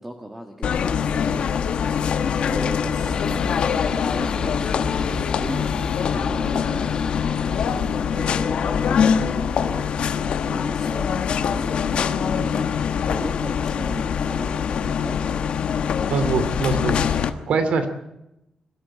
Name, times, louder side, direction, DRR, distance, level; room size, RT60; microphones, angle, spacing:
voice 1, 0.0-1.5 2.5-6.9 7.4-9.8 10.2-15.4, right 1 dB, 10° right, 3 dB, 1.6 m, -37 dB
sound 1, 0.6-17.3, left 7 dB, 65° left, 1.2 m, -23 dB
sound 2, 2.9-10.1, right 2 dB, 35° right, 2.3 m, -41 dB
sound 3, 3.1-9.7, left 5 dB, 40° left, 1.5 m, -39 dB
voice 2, 16.1-17.9, right 4 dB, 80° right, 10 dB, 2.5 m, -23 dB
22.5 x 13.0 x 8.8 m, 0.88 s
wide cardioid pair, 170°, 2 cm